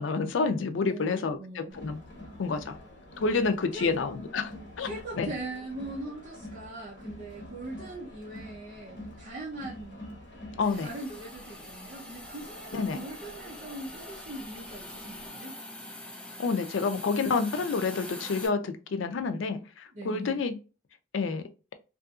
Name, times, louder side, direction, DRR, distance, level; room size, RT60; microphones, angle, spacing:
voice 1, 0.0-2.0 2.4-2.8 3.2-4.5 4.8-4.9 5.2-5.3 10.6-10.9 12.7-13.0 16.4-20.5 21.1-21.4, left 4 dB, 90° left, 0.4 m, -28 dB
voice 2, 0.8-1.8 3.7-3.9 4.8-10.0 10.5-15.5 19.9-20.5, right 2 dB, 45° right, 0.7 m, -41 dB
Crowd, 1.7-15.3, left 1 dB, 75° left, 1.1 m, -47 dB
Hiss, 10.6-18.5, left 1 dB, 5° left, 0.4 m, -44 dB
2.7 x 2.5 x 2.4 m
head